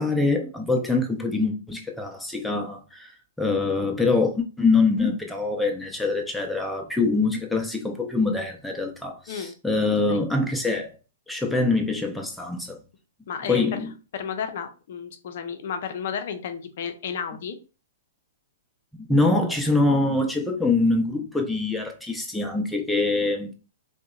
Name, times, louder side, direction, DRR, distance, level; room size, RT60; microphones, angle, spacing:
voice 1, 0.0-3.1 3.4-10.9 11.3-12.8 13.4-13.9 18.9-23.5, left 3 dB, 5° left, 0.5 m, -24 dB
voice 2, 13.3-13.8 14.1-17.6, left 7 dB, 55° left, 0.5 m, -32 dB
2.7 x 2.1 x 2.3 m
hypercardioid pair, 115°, 0 cm